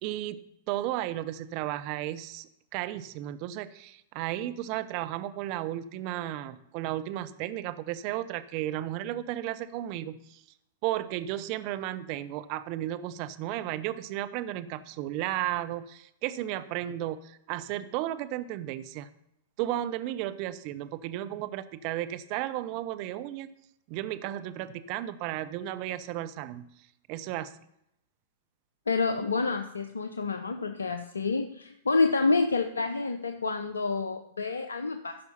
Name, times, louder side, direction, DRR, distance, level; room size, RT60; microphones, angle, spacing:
voice 1, 0.0-10.4 10.8-19.1 19.6-23.5 23.9-26.7 27.1-27.6, right 13 dB, 45° right, 12 dB, 0.6 m, -34 dB
voice 2, 28.9-35.2, left 3 dB, 80° left, 8 dB, 0.6 m, -28 dB
14.0 x 5.5 x 5.6 m, 0.79 s
figure-of-eight pair, 105°, 0 cm